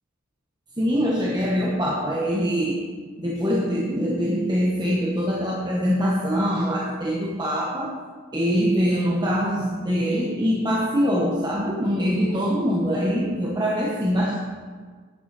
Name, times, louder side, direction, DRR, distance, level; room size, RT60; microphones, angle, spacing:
voice 1, 0.8-2.8 3.2-8.0 8.3-14.4, equal, 20° right, -4 dB, 1.1 m, -23 dB
11.0 x 9.8 x 4.1 m, 1.5 s
head